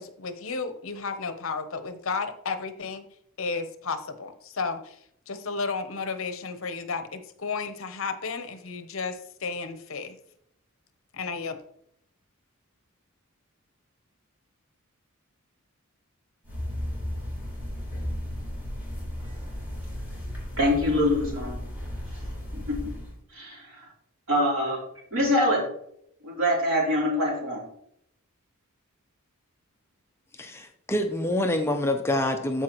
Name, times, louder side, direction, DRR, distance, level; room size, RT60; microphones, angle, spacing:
voice 1, 0.0-3.0 3.4-5.0 5.3-10.2 11.1-11.6, left 4 dB, 65° left, 9 dB, 0.8 m, -33 dB
sound 1, 16.4-23.2, equal, 10° right, 3.4 m, -34 dB
voice 2, 20.6-21.6 22.5-23.0 23.3-23.8 24.3-24.8 25.1-25.6 26.2-27.6, left 1 dB, 65° right, -4 dB, 3.5 m, -24 dB
voice 3, 30.4-32.6, left 1 dB, 10° left, 5 dB, 0.5 m, -26 dB
14.0 x 4.7 x 3.0 m, 0.70 s
head